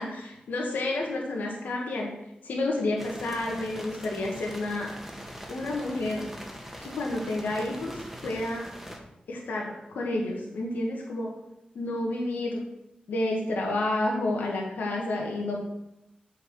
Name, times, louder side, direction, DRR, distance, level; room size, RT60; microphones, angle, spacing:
voice 1, 0.0-2.1 2.4-4.9 5.5-6.3 6.8-8.7 9.3-11.3 11.7-12.6 13.1-15.6, left 2 dB, 85° left, -2 dB, 1.6 m, -30 dB
sound 1, 3.0-9.0, equal, 5° right, 1.6 m, -42 dB
7.9 x 4.7 x 6.2 m, 0.86 s
cardioid pair, 55°, 3 cm